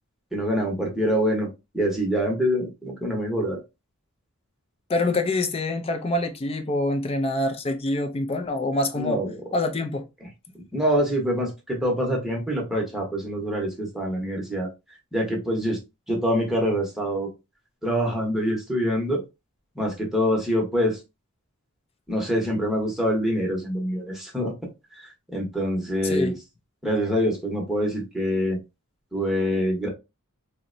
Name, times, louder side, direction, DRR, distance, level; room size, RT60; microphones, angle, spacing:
voice 1, 0.3-1.5 1.7-3.6 9.0-9.3 10.7-14.7 15.1-15.8 16.1-17.3 17.8-19.2 19.7-21.0 22.1-24.5 24.9-26.3 26.8-28.6 29.1-29.9, equal, ahead, 0.9 m, -25 dB
voice 2, 4.9-9.2 9.5-10.1 26.0-26.3, left 2 dB, 25° left, 0.4 m, -25 dB
3.9 x 2.1 x 2.5 m
head